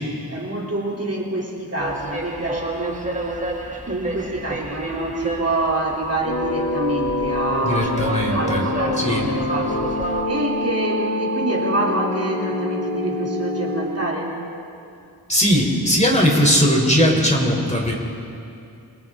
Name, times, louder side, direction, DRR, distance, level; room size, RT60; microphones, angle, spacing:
voice 1, 0.3-3.5 3.8-7.9 8.3-14.4, right 2 dB, 35° right, -3 dB, 3.3 m, -26 dB
sound 1, 1.8-10.2, right 1 dB, 20° right, 1.9 m, -31 dB
sound 2, 6.3-13.9, left 1 dB, 40° left, 4.6 m, -25 dB
voice 2, 7.6-8.6 9.0-9.3 15.3-17.9, equal, 15° left, 0 dB, 3.5 m, -19 dB
29.5 x 23.5 x 3.7 m, 2.5 s
wide cardioid pair, 45°, 40 cm